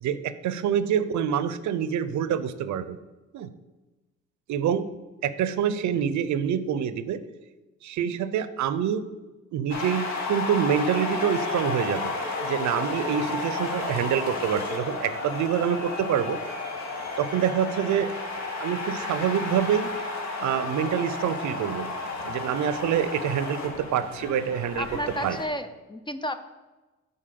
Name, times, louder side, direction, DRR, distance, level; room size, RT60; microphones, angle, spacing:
voice 1, 0.0-3.0 3.3-3.5 4.5-4.9 5.2-7.2 7.8-9.1 9.5-12.1 12.4-16.4 17.2-18.1 18.6-19.9 20.4-21.9 22.3-24.9 25.2-25.4, right 8 dB, 70° right, 13 dB, 0.6 m, -26 dB
sound 1, 9.7-25.4, left 3 dB, 65° left, 1.5 m, -32 dB
voice 2, 24.7-26.4, equal, 15° left, 10 dB, 0.5 m, -32 dB
7.5 x 4.1 x 6.7 m, 1.1 s
cardioid pair, 90°, 30 cm